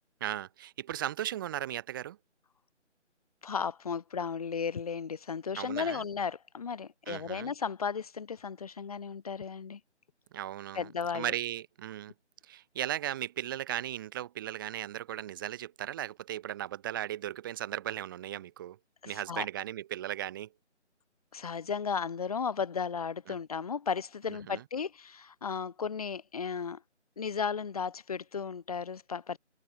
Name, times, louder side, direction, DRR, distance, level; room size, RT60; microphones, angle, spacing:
voice 1, 0.2-2.2 5.6-6.0 7.1-7.5 10.3-10.9 11.1-12.1 12.5-18.8 19.1-20.5 23.3-23.4 24.5-24.6, right 12 dB, 15° right, 7.1 m, -36 dB
voice 2, 3.4-9.8 10.7-11.3 19.0-19.5 21.3-26.8 27.2-29.4, left 6 dB, 30° left, 3.1 m, -35 dB
figure-of-eight pair, 170°, 36 cm